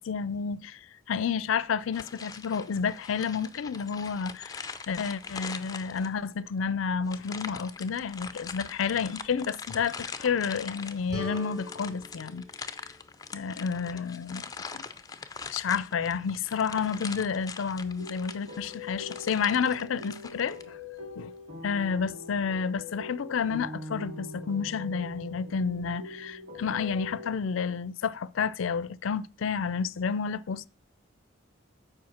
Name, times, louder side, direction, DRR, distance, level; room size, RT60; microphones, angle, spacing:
voice 1, 0.0-12.5 13.3-14.4 14.7-14.8 15.5-20.8 21.2-21.3 21.6-30.7, left 6 dB, 80° left, 0.4 m, -30 dB
sound 1, 1.9-6.3 7.1-20.6, left 5 dB, 20° left, 0.5 m, -42 dB
sound 2, 11.1-14.0, equal, 20° right, 2.5 m, -43 dB
sound 3, 17.7-27.3, left 2 dB, 80° right, 2.1 m, -43 dB
7.7 x 4.9 x 5.7 m
head